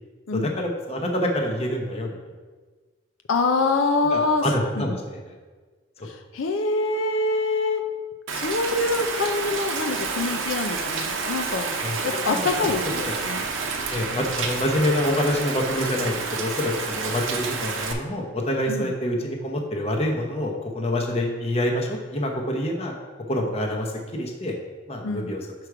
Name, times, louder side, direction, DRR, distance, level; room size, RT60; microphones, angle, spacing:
voice 1, 0.3-2.2 4.1-5.3 11.8-12.7 13.0-13.1 13.9-22.9 23.3-24.6 24.9-25.5, left 1 dB, 30° left, 1 dB, 0.8 m, -26 dB
voice 2, 3.3-4.5 4.8-4.9 6.1-7.8 8.3-11.8 12.0-13.5 18.7-18.9 25.0-25.3, left 3 dB, 85° left, 6 dB, 0.5 m, -25 dB
Rain, 8.3-17.9, right 4 dB, 85° right, 0.7 m, -29 dB
6.0 x 4.7 x 4.9 m, 1.4 s
head